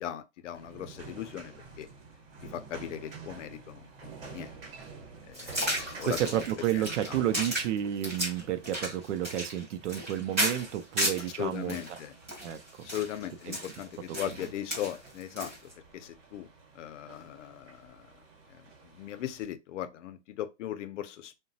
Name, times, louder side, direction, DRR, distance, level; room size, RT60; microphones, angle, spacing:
voice 1, 0.0-1.9 2.4-4.5 5.3-6.5 6.7-7.2 11.4-12.1 12.8-16.5 16.7-18.1 18.5-21.4, left 11 dB, 80° left, 0.6 m, -39 dB
sound 1, 0.5-19.4, right 4 dB, 55° right, 1.0 m, -50 dB
sound 2, 5.3-11.3 11.7-15.7, right 1 dB, 15° right, 0.4 m, -34 dB
voice 2, 6.0-11.8 12.4-12.6, right 11 dB, 80° right, 0.6 m, -31 dB
2.9 x 2.2 x 2.7 m
supercardioid pair, 180°, 35 cm